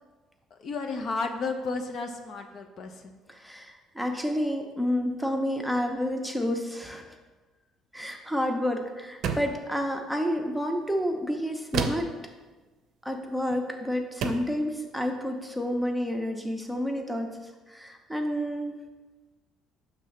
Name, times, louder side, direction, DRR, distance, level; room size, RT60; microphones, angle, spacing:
voice 1, 0.5-3.2, left 3 dB, 50° left, 5 dB, 0.6 m, -33 dB
voice 2, 3.3-7.0 7.9-12.1 13.0-18.8, equal, ahead, 3 dB, 0.7 m, -30 dB
sound 1, 9.2-9.7 11.7-12.2 13.5-13.7 14.2-14.6, right 6 dB, 65° right, 0.5 m, -30 dB
6.1 x 3.3 x 5.6 m, 1.2 s
cardioid pair, 110°, 0 cm